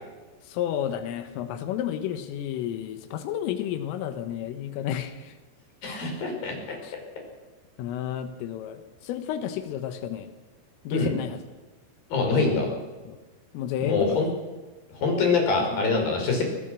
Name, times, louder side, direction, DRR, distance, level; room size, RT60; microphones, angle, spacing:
voice 1, 0.4-5.4 6.8-7.0 7.8-10.3 10.9-11.5 13.1-13.2 13.5-14.3 15.5-15.8 16.1-16.2, left 10 dB, 85° left, 9 dB, 3.8 m, -32 dB
voice 2, 5.8-6.5 10.9-11.1 12.1-12.7 13.8-14.3 15.0-16.4, left 4 dB, 45° left, 2 dB, 6.6 m, -24 dB
23.0 x 18.5 x 6.2 m, 1.2 s
omnidirectional pair, 5.7 m